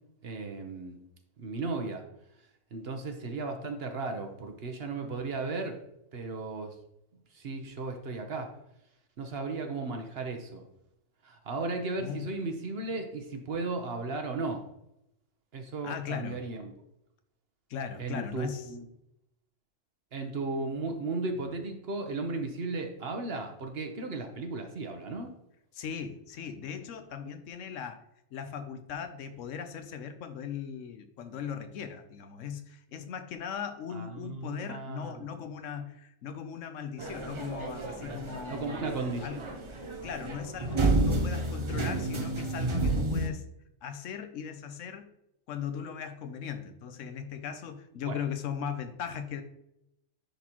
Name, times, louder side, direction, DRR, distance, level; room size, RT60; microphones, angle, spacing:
voice 1, 0.2-1.0 1.4-2.0 2.7-5.8 6.1-6.8 7.3-8.5 9.2-10.6 11.2-14.6 15.5-16.7 18.0-18.9 20.1-25.3 33.9-35.4 38.5-39.6 48.1-48.2, right 3 dB, 55° right, 5 dB, 1.0 m, -35 dB
voice 2, 12.0-12.3 15.8-16.4 17.7-18.7 25.7-28.0 28.3-39.4 40.0-43.4 43.8-45.1 45.5-49.4, left 7 dB, 75° left, 9 dB, 1.0 m, -38 dB
sound 1, 37.0-43.3, right 2 dB, 35° right, 0.5 m, -30 dB
10.0 x 4.0 x 3.0 m, 0.82 s
omnidirectional pair, 1.3 m